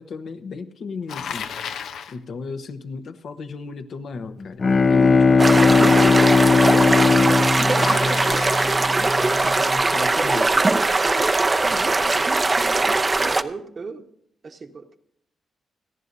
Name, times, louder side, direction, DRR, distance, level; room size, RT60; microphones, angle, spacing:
voice 1, 0.0-1.5 2.1-8.4 9.0-10.6, left 4 dB, 65° left, 1.0 m, -34 dB
Bicycle, 1.1-2.2 7.7-9.0, left 7 dB, 85° left, 0.8 m, -33 dB
Bowed string instrument, 4.4-9.1, left 4 dB, 40° left, 0.5 m, -17 dB
sound 1, 5.4-13.4, right 3 dB, 25° right, 0.7 m, -20 dB
voice 2, 11.7-12.5 13.1-14.1 14.4-15.0, right 4 dB, 45° right, 1.4 m, -38 dB
30.0 x 10.5 x 2.7 m
cardioid pair, 90°, 0 cm